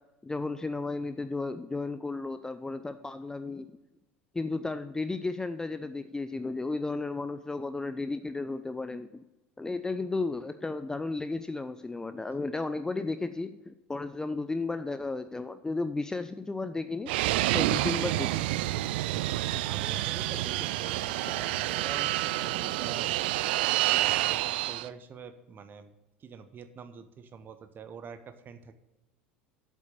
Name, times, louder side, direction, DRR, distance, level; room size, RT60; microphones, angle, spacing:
voice 1, 0.2-3.7 4.3-9.2 9.6-17.1 17.5-18.4 18.7-18.8 19.5-19.6, left 3 dB, 10° left, 11 dB, 0.4 m, -34 dB
Fixed-wing aircraft airplane, 17.1-24.9, right 16 dB, 55° right, 0.3 m, -28 dB
voice 2, 19.4-23.2 23.9-25.9 26.2-28.7, right 6 dB, 30° right, 11 dB, 0.9 m, -45 dB
7.9 x 7.3 x 6.6 m, 1.0 s
figure-of-eight pair, 75°, 6 cm